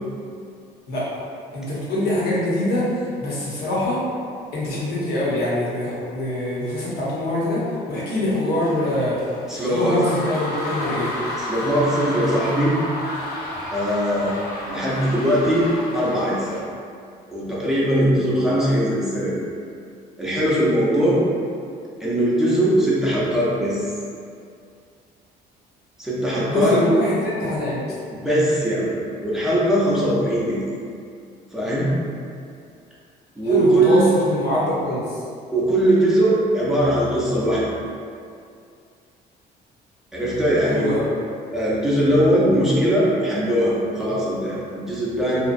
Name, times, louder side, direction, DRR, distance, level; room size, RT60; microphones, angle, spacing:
voice 1, 1.5-2.9 3.2-4.0 4.5-9.2 9.5-11.1 26.3-27.8 33.4-35.2 40.6-41.0, left 1 dB, 70° left, -8 dB, 1.0 m, -23 dB
sound 1, 8.3-16.6, left 1 dB, 85° left, 0.6 m, -31 dB
voice 2, 9.5-10.0 11.4-12.8 13.7-14.4 14.7-15.7 15.9-16.6 17.3-19.4 20.2-21.2 22.0-23.9 26.0-26.8 28.1-28.9 29.2-30.6 31.5-31.9 33.3-34.1 35.5-37.6 40.1-40.9 41.5-45.4, right 1 dB, 5° right, -8 dB, 0.7 m, -20 dB
2.8 x 2.2 x 2.5 m, 2.3 s
cardioid pair, 110°, 17 cm